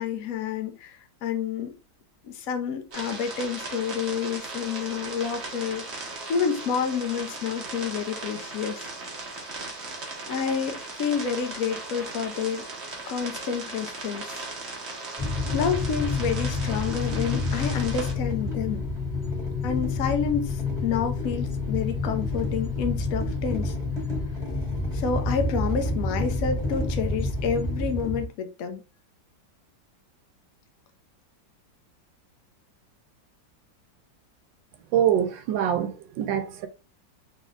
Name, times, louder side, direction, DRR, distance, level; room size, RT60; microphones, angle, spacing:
voice 1, 0.0-1.7 2.2-6.0 6.3-8.9 10.3-12.6 13.1-14.4 15.5-18.8 19.6-23.7 24.9-28.8, left 7 dB, 60° left, 0.9 m, -29 dB
sound 1, 2.9-18.1, right 3 dB, 40° right, 1.2 m, -37 dB
sound 2, 15.2-28.2, left 3 dB, ahead, 1.9 m, -28 dB
voice 2, 34.9-36.7, right 9 dB, 80° right, 1.4 m, -24 dB
4.0 x 3.6 x 2.5 m
omnidirectional pair, 2.0 m